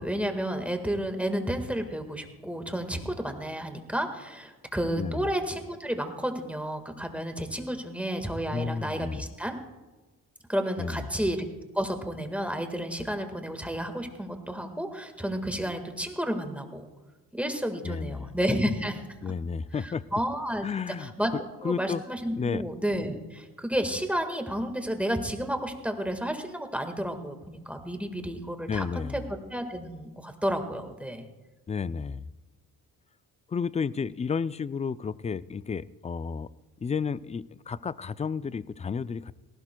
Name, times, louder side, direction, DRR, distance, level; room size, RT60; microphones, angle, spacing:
voice 1, 0.0-9.6 10.5-11.5 11.7-16.9 17.3-19.0 19.8-20.7 21.0-21.3 21.6-31.3, equal, 5° right, 6 dB, 1.6 m, -31 dB
voice 2, 5.0-5.3 8.5-9.2 10.8-11.1 17.8-18.3 19.2-20.2 20.6-21.1 21.6-22.0 22.3-22.6 28.7-29.3 31.7-32.3 33.5-36.5 36.8-39.3, left 5 dB, 20° left, 16 dB, 0.3 m, -32 dB
18.5 x 16.5 x 2.3 m, 1.2 s
cardioid pair, 90°, 36 cm